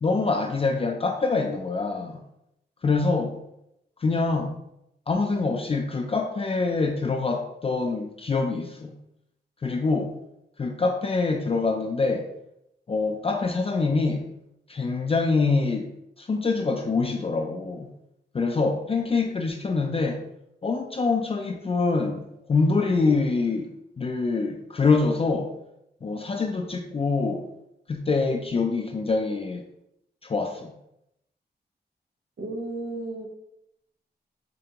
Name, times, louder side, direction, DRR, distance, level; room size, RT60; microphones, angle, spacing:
voice 1, 0.0-2.2 2.8-3.4 4.0-4.5 5.1-8.9 9.6-10.1 10.6-12.3 12.9-14.3 14.7-15.9 16.2-17.9 18.3-20.2 20.6-23.7 24.0-25.5 26.0-27.5 27.9-29.6 30.2-30.7, left 4 dB, 35° left, 2 dB, 0.4 m, -25 dB
voice 2, 32.4-33.3, right 2 dB, 85° right, 1 dB, 1.0 m, -34 dB
5.0 x 3.3 x 2.9 m, 0.82 s
wide cardioid pair, 120°, 17 cm